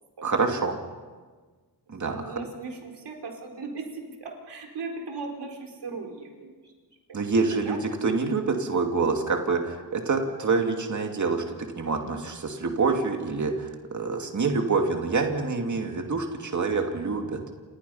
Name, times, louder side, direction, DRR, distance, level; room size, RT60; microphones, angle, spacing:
voice 1, 0.2-0.8 1.9-2.3 7.1-17.4, right 4 dB, 45° right, 3 dB, 2.6 m, -26 dB
voice 2, 2.0-6.7 7.1-7.8, right 4 dB, 90° right, 1 dB, 4.4 m, -38 dB
30.0 x 27.0 x 5.7 m, 1.4 s
wide cardioid pair, 170°, 40 cm